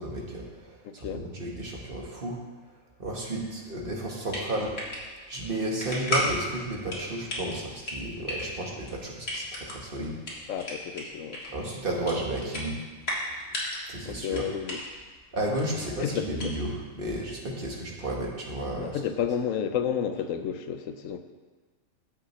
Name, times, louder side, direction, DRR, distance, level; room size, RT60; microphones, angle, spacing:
voice 1, 0.0-0.7 0.9-2.4 3.0-4.8 5.3-10.2 11.5-12.8 13.9-14.5 15.3-19.0, right 1 dB, 45° right, -1 dB, 1.5 m, -33 dB
voice 2, 0.8-1.2 10.5-11.4 14.0-14.8 16.0-16.5 18.8-21.2, left 8 dB, 90° left, 8 dB, 1.0 m, -31 dB
sound 1, 4.0-16.9, left 1 dB, 50° left, 2.1 m, -35 dB
14.0 x 5.7 x 3.2 m, 1.4 s
omnidirectional pair, 1.3 m